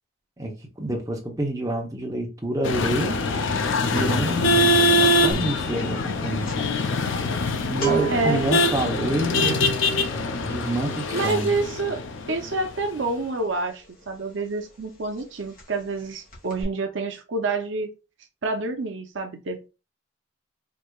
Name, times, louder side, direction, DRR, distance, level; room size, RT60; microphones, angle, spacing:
voice 1, 0.4-3.2 3.8-4.5 5.0-6.5 7.6-9.8 10.4-11.6, right 1 dB, 15° right, 0.8 m, -28 dB
sound 1, 2.6-13.0, left 2 dB, 65° left, 0.5 m, -23 dB
sound 2, 5.3-5.6 5.8-14.4 14.7-14.9 15.2-16.0 16.3-16.6, right 8 dB, 45° left, 1.4 m, -34 dB
voice 2, 8.1-8.5 11.1-17.9 18.4-19.6, right 3 dB, 60° right, 0.6 m, -28 dB
4.8 x 2.7 x 2.3 m
head